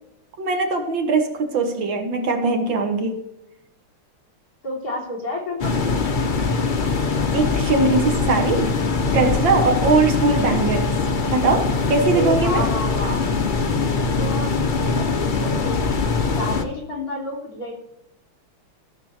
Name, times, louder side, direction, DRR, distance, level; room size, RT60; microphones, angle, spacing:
voice 1, 0.4-3.2 7.3-8.7 9.1-10.9 11.3-12.6, right 3 dB, 65° right, 5 dB, 1.9 m, -21 dB
voice 2, 4.6-6.0 12.0-13.4 14.1-15.9 16.3-17.8, left 1 dB, 45° left, -4 dB, 3.7 m, -30 dB
sound 1, 5.6-16.6, left 4 dB, 60° left, 0.5 m, -22 dB
15.0 x 7.3 x 3.3 m, 0.88 s
omnidirectional pair, 2.3 m